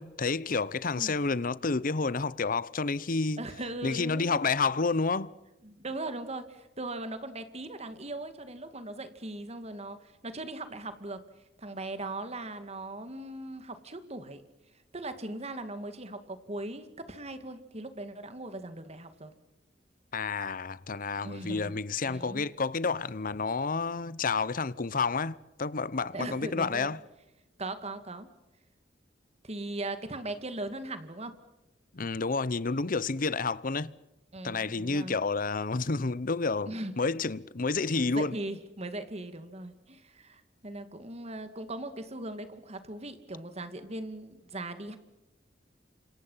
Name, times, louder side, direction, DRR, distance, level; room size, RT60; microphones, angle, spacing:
voice 1, 0.0-3.4 3.8-5.3 20.1-27.0 31.9-33.9 34.4-36.7 37.0-38.3, left 4 dB, 50° left, 0.8 m, -30 dB
voice 2, 3.4-4.5 5.6-11.2 11.6-14.4 14.9-19.3 21.2-22.4 26.1-26.9 27.6-28.3 29.4-31.3 34.3-35.1 36.7-37.0 37.7-45.0, right 2 dB, 35° right, 2.3 m, -39 dB
29.5 x 26.5 x 5.7 m
head